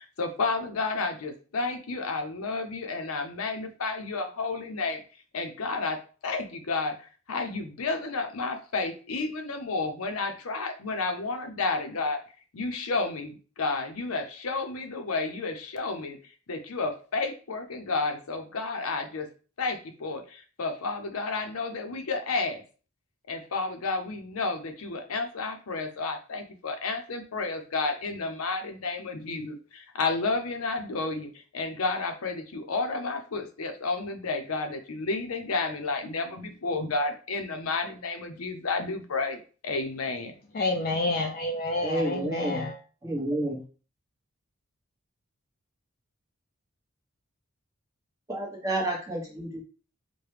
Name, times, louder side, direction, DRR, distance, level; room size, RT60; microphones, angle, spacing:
voice 1, 0.0-5.0 5.3-6.9 7.3-12.2 12.5-16.2 16.5-19.3 19.6-22.6 23.3-40.3, left 3 dB, 80° left, 6 dB, 0.6 m, -31 dB
voice 2, 40.5-42.7, left 2 dB, 40° left, 2 dB, 0.3 m, -28 dB
voice 3, 41.8-42.6 43.0-43.6 48.3-49.7, right 1 dB, 15° right, -3 dB, 1.0 m, -30 dB
4.8 x 2.2 x 3.2 m, 0.38 s
head